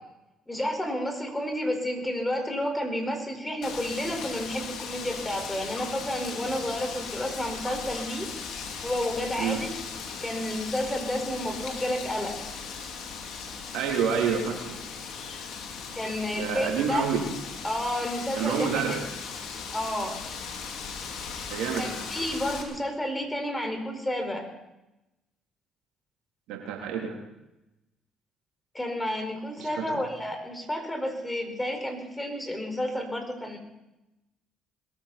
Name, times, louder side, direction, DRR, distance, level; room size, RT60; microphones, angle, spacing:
voice 1, 0.5-8.3 8.8-9.7 10.2-12.4 15.9-17.0 17.6-18.7 19.7-20.2 21.8-24.5 28.7-33.6, left 1 dB, 15° left, 4 dB, 4.8 m, -31 dB
Wind, 3.6-22.6, left 5 dB, 65° left, 2.6 m, -38 dB
voice 2, 13.7-14.8 16.3-17.3 18.3-19.1 21.5-22.0 26.5-27.1 29.6-30.0, right 6 dB, 75° right, 0 dB, 3.1 m, -28 dB
21.5 x 14.0 x 4.2 m, 0.95 s
hypercardioid pair, 55°, 0 cm